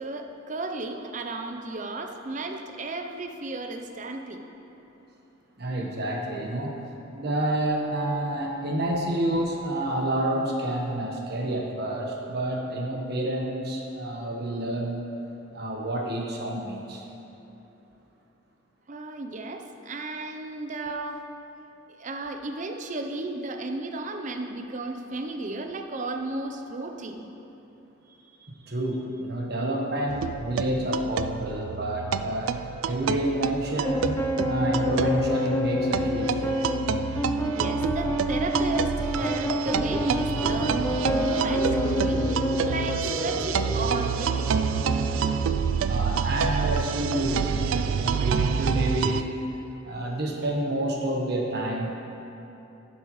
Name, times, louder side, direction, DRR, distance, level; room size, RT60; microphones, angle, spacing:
voice 1, 0.0-4.4 6.6-6.8 18.9-21.2 22.0-27.3 37.5-44.5, right 2 dB, 40° right, 5 dB, 0.6 m, -34 dB
voice 2, 5.6-6.8 7.1-15.0 15.5-17.0 28.4-32.5 32.8-37.0 45.9-49.2 49.8-52.0, right 1 dB, 55° right, 0 dB, 1.2 m, -29 dB
sound 1, 30.1-49.2, right 6 dB, 80° right, 0.3 m, -28 dB
sound 2, 33.8-42.9, left 1 dB, 10° left, 0.5 m, -27 dB
sound 3, 39.1-45.6, right 1 dB, 80° left, 2.0 m, -34 dB
11.5 x 10.0 x 3.1 m, 3.0 s
head